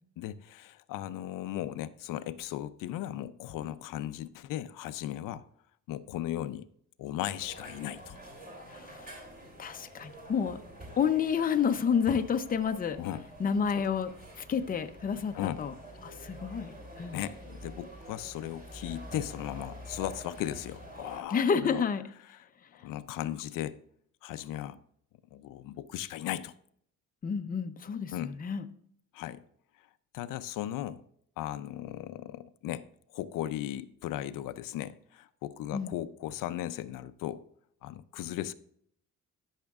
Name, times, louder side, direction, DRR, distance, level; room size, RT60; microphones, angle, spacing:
voice 1, 0.2-5.4 5.9-6.7 7.0-8.2 13.0-13.2 13.7-13.9 15.3-15.6 17.1-21.8 22.3-22.4 22.7-23.8 24.2-24.8 25.3-26.5 28.1-28.4 29.1-29.4 30.1-31.0 31.4-32.9 33.1-37.4 37.8-38.5, left 13 dB, 90° left, 0.5 m, -37 dB
sound 1, 7.4-21.2, right 1 dB, 30° right, 3.0 m, -47 dB
voice 2, 8.8-9.2 9.6-10.6 11.0-13.0 13.4-14.1 14.4-15.7 16.0-16.7 17.0-17.2 21.3-22.0 27.2-28.6 35.7-35.9, left 7 dB, 30° left, 0.6 m, -29 dB
12.0 x 6.4 x 2.4 m
cardioid pair, 140°, 31 cm